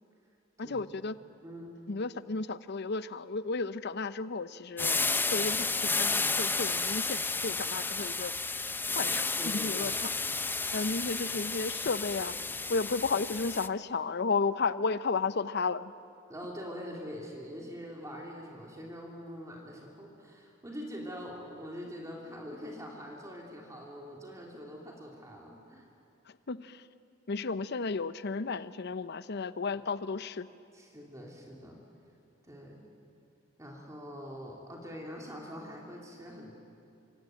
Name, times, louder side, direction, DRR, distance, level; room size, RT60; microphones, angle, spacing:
voice 1, 0.6-1.2 1.9-5.0 5.3-8.3 8.9-10.1 10.7-12.4 12.7-15.9 26.5-26.8 27.3-30.5, left 4 dB, 55° left, 14 dB, 0.7 m, -33 dB
voice 2, 1.4-1.7 9.4-10.0 11.2-11.4 16.3-25.9 30.7-31.8 32.4-32.8 33.6-36.5, equal, 15° right, -1 dB, 3.0 m, -44 dB
sound 1, 4.8-13.7, left 3 dB, 10° left, 0.6 m, -32 dB
26.0 x 25.5 x 9.1 m, 2.6 s
head